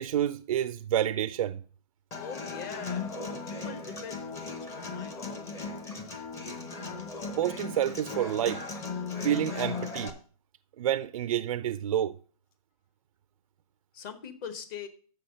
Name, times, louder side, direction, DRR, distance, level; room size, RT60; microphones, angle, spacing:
voice 1, 0.0-1.6 7.4-8.6 9.2-10.1 10.8-12.2, right 11 dB, 65° right, 0.4 m, -28 dB
Human voice / Acoustic guitar, 2.1-10.1, left 4 dB, 15° left, 0.7 m, -37 dB
voice 2, 2.2-3.2 3.4-5.7 13.9-14.9, left 7 dB, 35° left, 1.1 m, -43 dB
7.1 x 5.7 x 6.2 m
hypercardioid pair, 155°, 19 cm